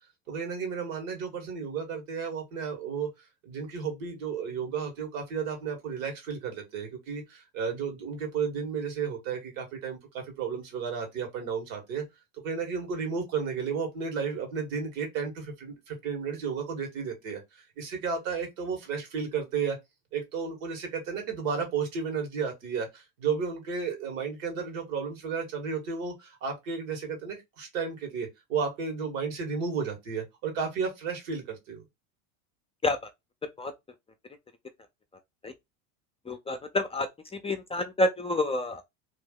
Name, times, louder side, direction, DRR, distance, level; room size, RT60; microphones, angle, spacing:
voice 1, 0.3-3.1 3.4-12.0 12.4-19.8 20.1-31.8, right 6 dB, 75° right, 1.9 m, -33 dB
voice 2, 36.3-37.1 37.3-38.8, left 2 dB, 15° left, 0.6 m, -28 dB
3.1 x 2.7 x 3.7 m
supercardioid pair, 100°, 40 cm